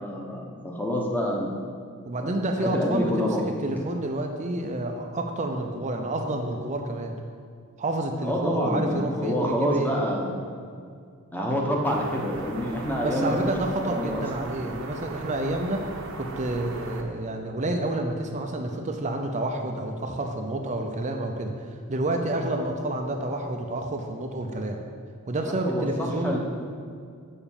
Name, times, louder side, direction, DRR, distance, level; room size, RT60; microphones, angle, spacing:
voice 1, 0.0-1.5 2.2-3.7 8.2-10.3 11.3-13.5 13.8-14.5 25.5-26.4, equal, 10° left, -1 dB, 1.1 m, -27 dB
voice 2, 2.0-3.4 3.6-7.1 7.8-9.9 13.0-24.8 25.3-26.4, right 1 dB, 35° right, 3 dB, 0.6 m, -29 dB
sound 1, 11.8-17.0, right 2 dB, 65° right, 0.9 m, -38 dB
6.9 x 5.3 x 7.2 m, 2.2 s
head